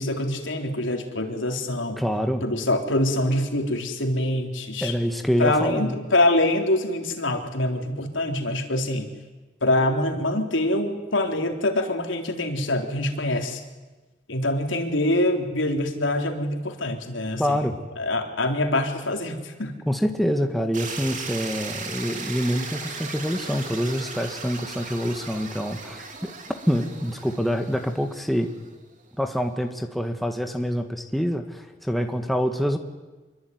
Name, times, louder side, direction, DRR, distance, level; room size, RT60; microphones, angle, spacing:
voice 1, 0.0-2.0 2.4-4.9 5.4-9.1 9.6-13.6 14.3-17.6 18.0-19.7, left 1 dB, 85° left, 4 dB, 3.7 m, -25 dB
voice 2, 2.0-2.4 4.8-6.0 17.4-17.8 19.9-26.3 26.7-28.5 29.2-32.8, equal, ahead, 4 dB, 1.7 m, -26 dB
sound 1, 20.7-28.7, right 4 dB, 40° right, 3.5 m, -37 dB
26.5 x 23.5 x 9.6 m, 1.2 s
head